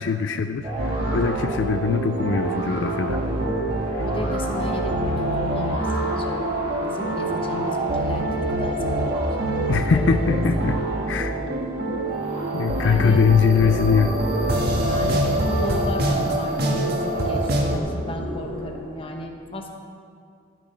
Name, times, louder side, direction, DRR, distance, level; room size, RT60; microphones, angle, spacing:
voice 1, 0.0-3.2 4.0-4.1 9.7-11.4 12.5-14.2, left 6 dB, 75° left, 8 dB, 0.4 m, -22 dB
sound 1, 0.6-19.0, right 1 dB, 30° right, 2.0 m, -32 dB
sound 2, 0.8-17.8, right 1 dB, 60° right, 1.3 m, -26 dB
voice 2, 4.0-6.5 6.7-9.2 9.9-10.6 12.7-13.8 14.8-19.7, left 1 dB, 30° left, 2 dB, 1.1 m, -34 dB
12.0 x 7.3 x 5.7 m, 2.3 s
head